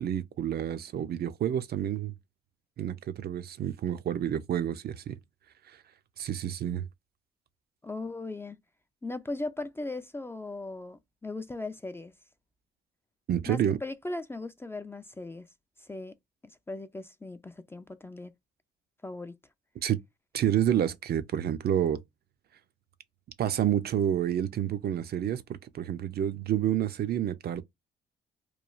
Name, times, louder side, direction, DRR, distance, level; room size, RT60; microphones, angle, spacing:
voice 1, 0.0-2.1 2.8-5.2 5.7-5.8 6.2-6.9 13.3-13.8 19.8-20.0 20.3-22.0 23.4-27.6, right 10 dB, 55° right, 0.4 m, -29 dB
voice 2, 7.8-8.6 9.0-12.1 13.5-15.5 15.8-16.1 16.7-18.3 19.0-19.4, left 2 dB, 10° left, 0.3 m, -38 dB
3.0 x 2.3 x 2.3 m
cardioid pair, 90°, 20 cm